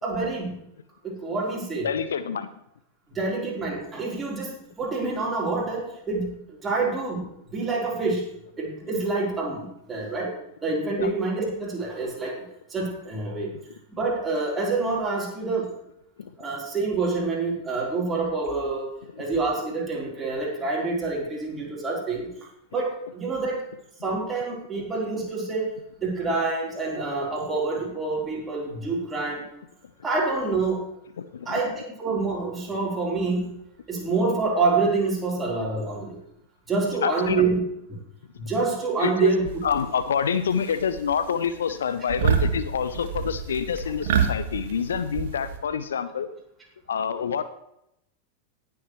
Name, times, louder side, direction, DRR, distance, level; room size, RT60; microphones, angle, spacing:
voice 1, 0.0-0.6 1.0-1.9 3.1-8.2 8.6-10.3 10.6-13.5 14.0-15.7 16.4-18.9 19.2-23.7 24.0-25.7 26.0-29.4 30.0-30.8 31.5-33.5 33.9-36.2 36.7-37.6 38.4-39.4, right 3 dB, 15° right, -3 dB, 4.0 m, -27 dB
voice 2, 1.8-2.5 10.0-10.1 11.0-11.1 16.2-16.4 19.0-19.2 31.2-31.5 37.0-37.5 39.0-39.3 39.6-46.3 46.9-47.4, left 7 dB, 65° left, 13 dB, 0.6 m, -27 dB
sound 1, 39.4-40.1 40.5-41.1 41.4-41.7 42.1-45.6, right 7 dB, 55° right, 1.3 m, -27 dB
19.0 x 7.1 x 3.2 m, 0.79 s
figure-of-eight pair, 90°, 0 cm